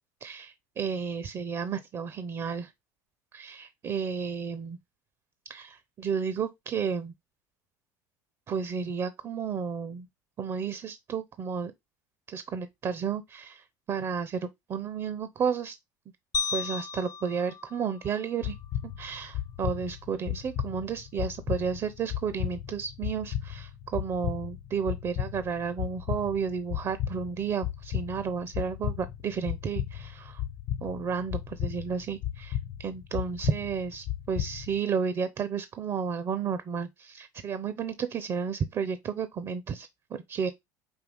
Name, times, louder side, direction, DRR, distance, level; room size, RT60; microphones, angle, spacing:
voice 1, 0.2-2.7 3.3-4.8 5.5-7.1 8.5-10.1 10.4-11.7 12.3-15.8 16.5-18.6 18.8-30.4 30.8-40.5, right 6 dB, 35° right, 0.6 m, -32 dB
sound 1, 16.3-18.7, left 5 dB, 40° left, 0.5 m, -35 dB
sound 2, 18.4-34.8, left 11 dB, 65° left, 1.1 m, -35 dB
5.4 x 2.8 x 3.5 m
supercardioid pair, 100°, 9 cm